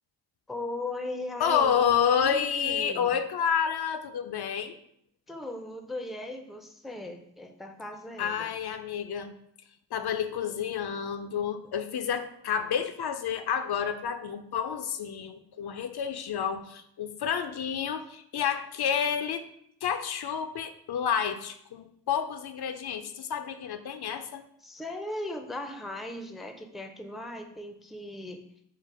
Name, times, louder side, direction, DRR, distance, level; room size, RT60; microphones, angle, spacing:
voice 1, 0.5-3.1 5.3-8.6 24.6-28.4, left 1 dB, ahead, 6 dB, 0.4 m, -38 dB
voice 2, 1.4-4.7 8.2-9.3 9.9-19.4 19.8-24.4, left 7 dB, 65° left, 9 dB, 0.5 m, -29 dB
3.8 x 2.4 x 4.6 m, 0.71 s
cardioid pair, 50°, 42 cm